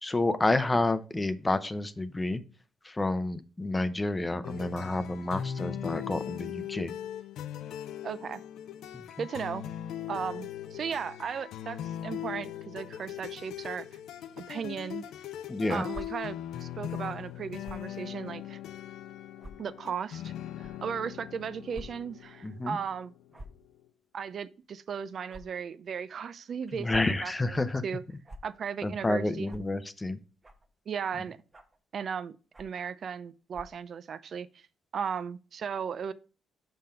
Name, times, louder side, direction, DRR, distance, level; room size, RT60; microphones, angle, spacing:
voice 1, 0.0-2.4 2.8-6.9 8.9-9.3 15.5-15.8 22.4-22.8 26.7-27.8 28.8-30.2, left 2 dB, 20° left, 0.6 m, -29 dB
sound 1, 4.4-23.8, left 10 dB, 80° left, 0.4 m, -40 dB
voice 2, 8.0-8.4 9.2-9.7 10.1-13.9 14.4-15.0 15.7-18.6 19.6-20.3 20.8-23.1 24.1-28.0 28.4-29.6 30.9-31.4 31.9-34.6 34.9-36.1, right 7 dB, 55° right, 0.5 m, -36 dB
sound 2, 15.9-16.0 17.6-17.9 18.6-18.7 19.4-19.5 20.6-20.7 21.7-21.9 22.2-22.3 23.3-23.6 25.3-25.4 26.7-27.1 28.2-28.4 29.4-29.6 30.4-30.7 31.5-31.8 32.5-32.8 33.5-33.8, right 1 dB, 25° right, 1.0 m, -45 dB
5.6 x 5.2 x 4.3 m
cardioid pair, 90°, 0 cm